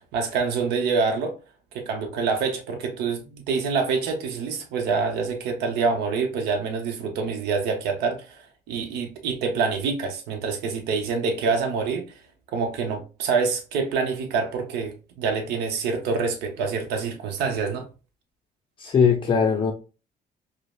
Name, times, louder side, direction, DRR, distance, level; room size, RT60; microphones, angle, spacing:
voice 1, 0.1-1.3 1.7-12.2 12.5-17.9, right 5 dB, 80° right, 0.7 m, -26 dB
voice 2, 18.8-19.7, left 6 dB, 30° left, 0.4 m, -20 dB
5.0 x 2.0 x 2.3 m
cardioid pair, 110°, 17 cm